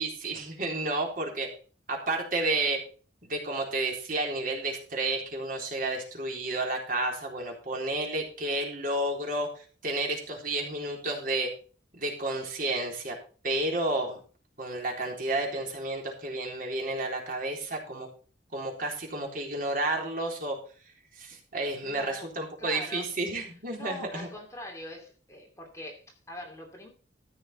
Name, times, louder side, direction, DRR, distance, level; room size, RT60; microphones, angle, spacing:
voice 1, 0.0-1.5 1.9-2.8 3.2-11.5 11.9-13.2 13.4-14.2 14.6-18.1 18.5-20.6 21.2-24.3, right 2 dB, 50° right, 0 dB, 3.9 m, -31 dB
voice 2, 21.8-22.3 22.6-23.1 23.7-26.9, left 1 dB, 15° left, 1 dB, 2.8 m, -43 dB
14.0 x 6.5 x 5.5 m, 0.39 s
head